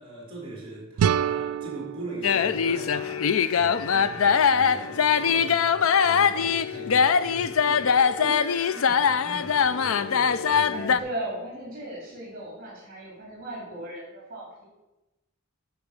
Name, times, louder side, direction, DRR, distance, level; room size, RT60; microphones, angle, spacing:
voice 1, 0.0-11.0, right 1 dB, 25° right, -3 dB, 3.5 m, -41 dB
sound 1, 1.0-3.9, right 9 dB, 85° right, 0.3 m, -29 dB
sound 2, 2.2-11.0, left 6 dB, 75° left, 0.5 m, -22 dB
voice 2, 10.7-14.6, right 1 dB, 40° right, -4 dB, 3.4 m, -37 dB
12.0 x 4.6 x 6.7 m, 1.0 s
head